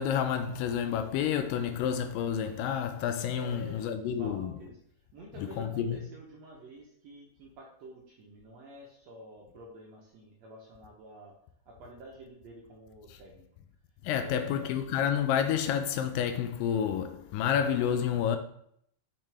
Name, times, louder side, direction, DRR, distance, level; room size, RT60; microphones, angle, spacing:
voice 1, 0.0-4.5 5.6-6.0 14.0-18.4, left 8 dB, 80° left, 2.2 m, -29 dB
voice 2, 3.3-4.8 5.1-11.3 11.6-13.5 14.1-14.8, equal, 70° right, 1.7 m, -49 dB
6.7 x 5.8 x 3.4 m
omnidirectional pair, 4.1 m